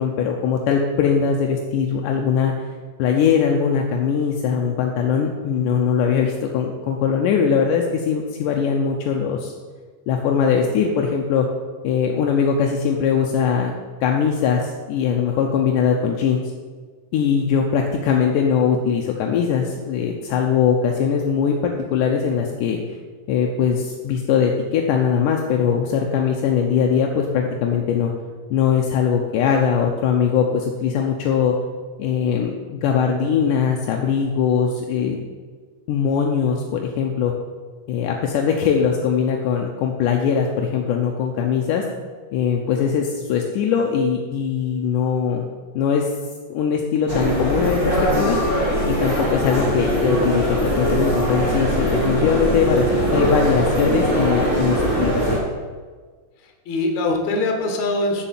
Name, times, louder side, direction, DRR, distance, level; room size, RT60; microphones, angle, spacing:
voice 1, 0.0-2.5 3.0-9.5 10.1-11.5 11.8-13.7 14.0-16.4 17.1-22.8 23.3-28.1 28.5-31.6 32.0-32.5 32.8-35.2 35.9-37.3 37.9-41.8 42.3-45.4 45.8-46.1 46.5-48.4 48.9-55.4, left 7 dB, 80° left, 1 dB, 2.2 m, -21 dB
sound 1, 47.1-55.4, equal, 5° right, 3.1 m, -21 dB
voice 2, 56.4-58.3, left 2 dB, 65° left, 3 dB, 2.4 m, -23 dB
7.0 x 6.7 x 7.2 m, 1.5 s
omnidirectional pair, 3.8 m